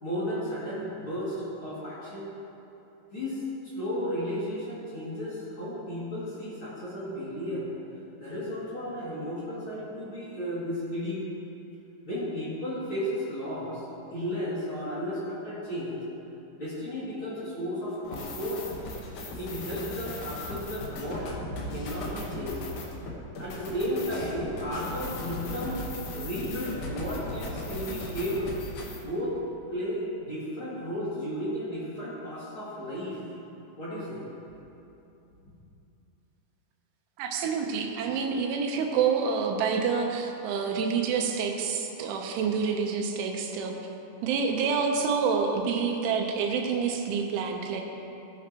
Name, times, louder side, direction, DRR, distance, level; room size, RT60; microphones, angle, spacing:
voice 1, 0.0-2.3 3.1-3.4 3.7-7.6 8.2-11.2 12.0-13.8 14.1-16.0 16.6-18.6 19.4-21.3 21.7-22.6 23.4-25.8 26.1-28.5 29.0-29.3 29.7-33.2 33.8-34.2, equal, 35° left, -10 dB, 2.6 m, -33 dB
sound 1, 18.0-29.0, left 1 dB, 65° left, 2.1 m, -37 dB
voice 2, 37.2-43.8 44.2-47.8, right 5 dB, 90° right, 2 dB, 3.4 m, -27 dB
18.0 x 9.5 x 3.0 m, 2.9 s
omnidirectional pair, 5.3 m